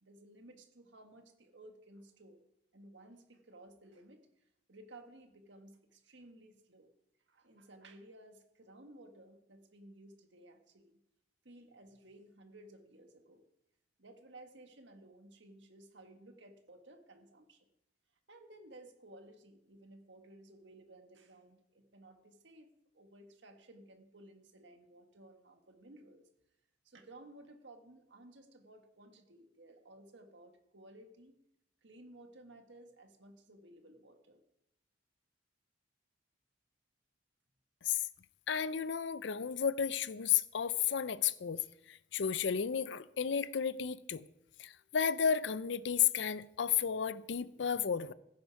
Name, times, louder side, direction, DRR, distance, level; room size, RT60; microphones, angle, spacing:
voice 1, 0.0-2.4 2.7-4.3 4.7-6.9 7.3-11.0 11.4-13.4 14.0-17.7 18.3-26.3 26.8-31.4 31.8-34.4, right 1 dB, 70° right, 1.7 m, -57 dB
voice 2, 38.5-44.3 44.6-48.1, left 8 dB, 70° left, 0.5 m, -33 dB
16.0 x 9.3 x 4.8 m
head